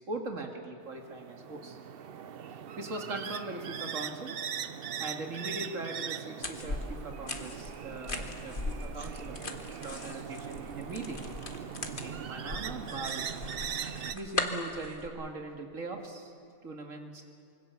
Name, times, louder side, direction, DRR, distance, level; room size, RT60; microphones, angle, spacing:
voice 1, 0.1-1.8 2.8-4.4 5.0-11.2 12.0-13.3 14.1-16.3 16.6-17.2, right 2 dB, 75° right, 3 dB, 2.6 m, -40 dB
sound 1, 0.8-14.1, right 8 dB, 55° right, 0.8 m, -40 dB
sound 2, 6.4-15.1, left 2 dB, 40° left, 1.9 m, -39 dB
26.0 x 24.0 x 7.1 m, 2.5 s
omnidirectional pair, 1.3 m